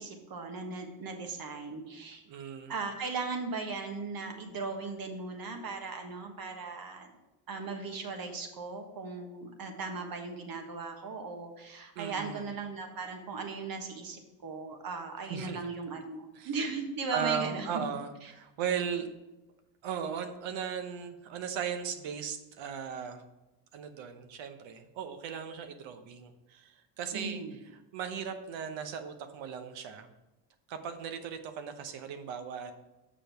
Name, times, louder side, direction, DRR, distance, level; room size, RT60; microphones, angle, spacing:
voice 1, 0.0-2.2 2.7-7.1 7.5-17.7 27.1-27.6, right 4 dB, 45° right, 4 dB, 1.4 m, -38 dB
voice 2, 2.3-2.7 11.9-12.5 15.3-15.6 16.3-16.5 17.1-19.1 19.8-23.2 23.7-27.4 27.7-30.1 30.7-32.7, right 7 dB, 70° right, 8 dB, 1.0 m, -37 dB
6.7 x 5.0 x 5.8 m, 1.0 s
cardioid pair, 95°, 47 cm